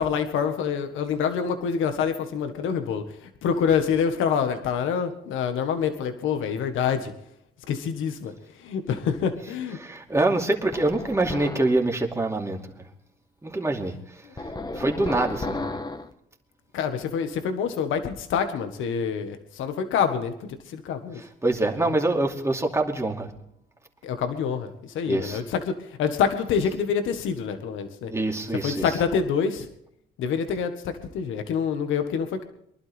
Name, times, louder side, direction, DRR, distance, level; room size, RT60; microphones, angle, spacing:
voice 1, 0.0-7.1 7.7-8.3 8.6-9.8 16.7-20.3 20.7-21.2 21.8-21.9 24.0-28.1 28.6-29.7 30.2-32.4, left 7 dB, 85° left, 8 dB, 1.6 m, -26 dB
voice 2, 9.8-12.6 13.4-14.4 14.7-15.7 21.2-23.3 25.1-25.4 28.1-28.9, right 2 dB, 15° right, 1 dB, 2.6 m, -25 dB
sound 1, 10.7-11.8 14.4-16.1, left 2 dB, 20° left, 1.4 m, -33 dB
23.5 x 12.0 x 3.5 m, 0.74 s
cardioid pair, 90°, 20 cm